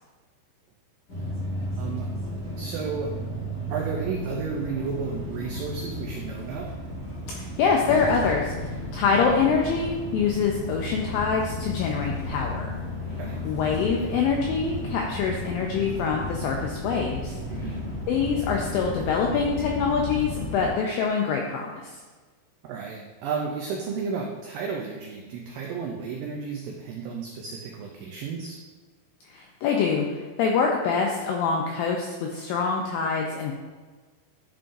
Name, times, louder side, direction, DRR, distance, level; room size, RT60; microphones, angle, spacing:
sound 1, 1.1-20.7, left 1 dB, 55° left, 0.6 m, -33 dB
voice 1, 1.7-2.1 2.6-3.1 3.7-6.7 13.2-13.4 17.5-17.9 22.6-28.6, right 5 dB, 85° right, 0 dB, 2.0 m, -33 dB
voice 2, 7.3-12.7 13.5-17.4 18.1-21.8 29.2-33.5, left 5 dB, 85° left, 0 dB, 2.0 m, -25 dB
10.5 x 3.8 x 2.5 m, 1.3 s
omnidirectional pair, 4.7 m